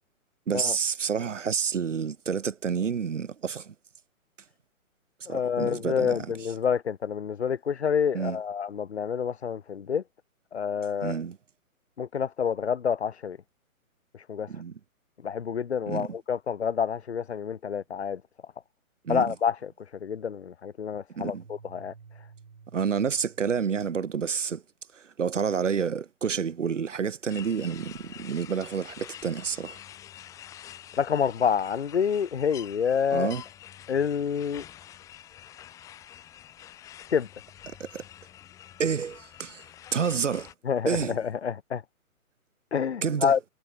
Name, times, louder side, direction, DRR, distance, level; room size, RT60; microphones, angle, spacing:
voice 1, 0.5-3.7 5.3-6.3 8.1-8.4 11.0-11.4 14.5-14.8 15.9-16.2 19.0-19.3 21.1-21.4 22.7-24.6 24.9-29.8 33.1-33.4 37.7-38.0 38.8-39.6 39.9-40.5 40.9-41.2 43.0-43.4, right 6 dB, 55° right, 2.7 m, -29 dB
voice 2, 5.3-10.0 10.5-11.2 12.0-13.4 14.3-14.5 15.2-18.2 19.1-19.7 20.0-21.9 31.0-33.3 33.9-34.6 37.1-37.3 40.7-41.8 42.7-43.4, left 7 dB, 50° left, 1.0 m, -28 dB
sound 1, 21.4-23.9, right 5 dB, 85° right, 6.5 m, -52 dB
sound 2, 27.3-40.5, left 11 dB, 5° left, 3.6 m, -47 dB
hypercardioid pair, 175°, 43 cm